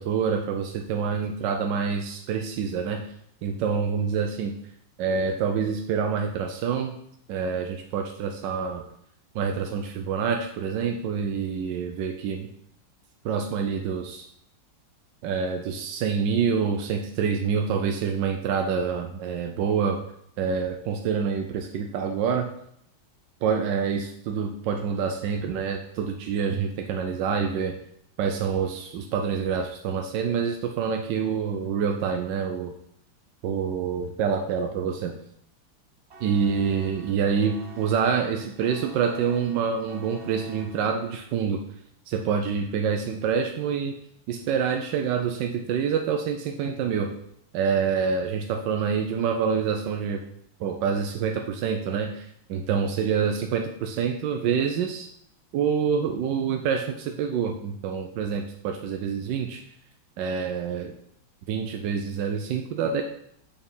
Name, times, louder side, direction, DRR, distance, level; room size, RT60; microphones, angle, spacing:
voice 1, 0.0-3.0 3.4-4.5 5.0-7.0 7.3-8.8 9.3-12.5 13.2-14.3 15.2-20.0 20.4-22.5 23.4-27.8 28.2-32.7 33.4-35.1 36.2-41.6 42.1-44.0 44.3-47.1 47.5-50.2 50.6-55.1 55.5-59.6 60.2-60.9 61.5-63.0, right 6 dB, 70° right, 4 dB, 1.1 m, -27 dB
sound 1, 36.1-41.4, right 2 dB, 50° right, 0.8 m, -48 dB
6.7 x 4.3 x 5.4 m, 0.71 s
omnidirectional pair, 2.4 m